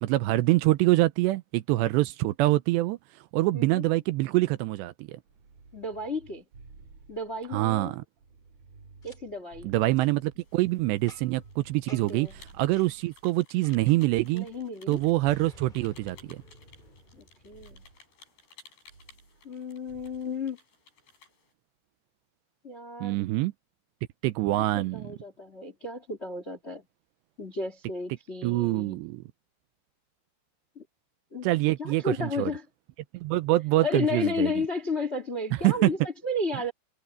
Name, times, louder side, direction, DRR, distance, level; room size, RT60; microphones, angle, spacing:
voice 1, 0.0-3.0 3.3-5.2 7.5-8.0 9.6-14.5 14.9-16.4 23.0-23.5 24.2-25.1 28.4-29.2 31.4-32.5 33.1-34.5 35.5-35.9, right 18 dB, 80° right, 2.7 m, -25 dB
sound 1, 5.3-7.7 8.2-10.6 11.1-13.3 13.7-15.6 16.2-17.2 17.5-18.0 18.9-19.6 19.9-20.3, right 4 dB, 45° right, 7.4 m, -54 dB
voice 2, 5.7-6.4 7.1-7.9 9.0-9.7 11.9-12.3 14.3-15.0 17.2-17.8 19.4-20.6 22.6-23.2 24.5-26.8 27.4-29.0 30.7-30.8 31.3-31.5 31.8-32.6 33.8-36.7, left 2 dB, 30° left, 1.1 m, -33 dB
Boom, 9.0-9.2 9.9-10.1 11.1-11.5 11.9-12.2 12.8-12.9 13.6-14.0 15.2-17.9, left 2 dB, 15° left, 1.7 m, -53 dB
sound 2, 10.4-21.5, left 4 dB, 60° left, 9.9 m, -58 dB
omnidirectional pair, 5.3 m